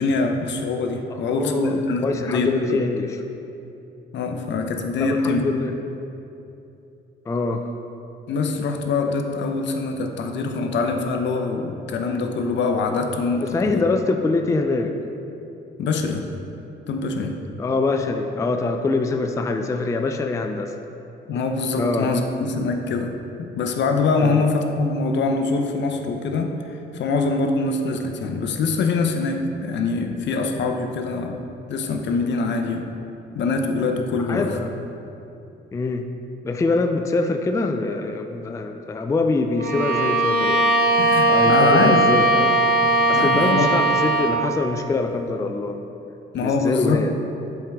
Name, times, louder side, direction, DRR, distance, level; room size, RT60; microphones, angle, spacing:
voice 1, 0.0-2.8 4.1-5.4 8.3-13.8 15.8-16.3 16.9-17.4 21.3-31.4 31.7-32.9 33.3-34.6 41.0-42.0 43.1-43.7 46.3-47.0, left 3 dB, 65° left, 4 dB, 0.6 m, -24 dB
voice 2, 1.1-3.2 5.0-5.7 7.3-7.7 13.4-14.9 17.6-20.7 21.7-22.1 24.2-24.4 34.3-34.7 35.7-36.0 36.4-40.7 41.3-42.6 43.1-45.8 46.4-47.1, left 3 dB, 15° left, 6 dB, 0.3 m, -24 dB
Bowed string instrument, 39.6-44.4, right 1 dB, 50° right, 0.8 m, -19 dB
7.2 x 4.6 x 3.5 m, 2.8 s
cardioid pair, 90°, 20 cm